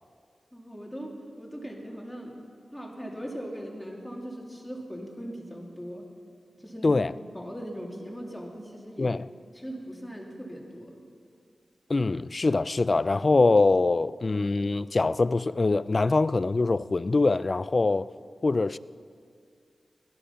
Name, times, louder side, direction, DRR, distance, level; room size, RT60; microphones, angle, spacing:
voice 1, 0.5-2.4 2.7-6.1 6.6-6.9 7.3-9.2 9.5-11.0, equal, 5° left, 2.4 m, -39 dB
voice 2, 11.9-18.1 18.4-18.8, left 3 dB, 40° left, 0.3 m, -23 dB
17.0 x 12.5 x 5.7 m
wide cardioid pair, 95°, 0 cm